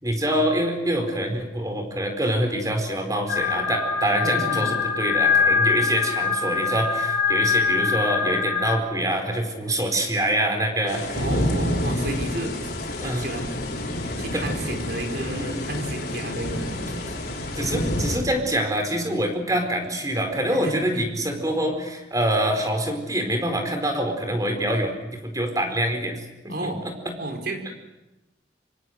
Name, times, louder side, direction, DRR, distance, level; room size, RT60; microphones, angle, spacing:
voice 1, 0.0-11.2 13.0-13.2 14.3-14.4 15.3-15.6 16.8-16.9 17.6-26.2 26.4-27.2, right 1 dB, 20° right, 5 dB, 4.6 m, -25 dB
sound 1, 3.3-8.8, left 5 dB, 80° left, 3.0 m, -23 dB
voice 2, 4.2-4.7 11.2-12.5 13.0-13.5 14.2-16.7 20.5-20.7 26.5-26.9 27.2-27.7, right 1 dB, 60° right, 4 dB, 4.6 m, -32 dB
sound 2, 10.9-18.2, left 1 dB, 65° left, 5.3 m, -28 dB
25.5 x 25.0 x 6.6 m, 0.97 s
head